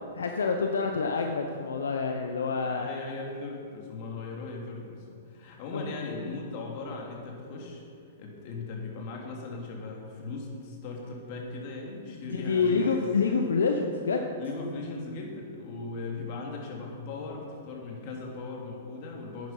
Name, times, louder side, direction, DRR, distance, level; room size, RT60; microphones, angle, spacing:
voice 1, 0.1-2.9 5.7-5.8 12.1-14.3, left 5 dB, 85° left, 4 dB, 0.9 m, -27 dB
voice 2, 2.4-7.8 8.2-13.0 14.4-19.5, left 3 dB, 50° left, 0 dB, 2.9 m, -38 dB
11.0 x 9.4 x 5.7 m, 2.4 s
hypercardioid pair, 125°, 0 cm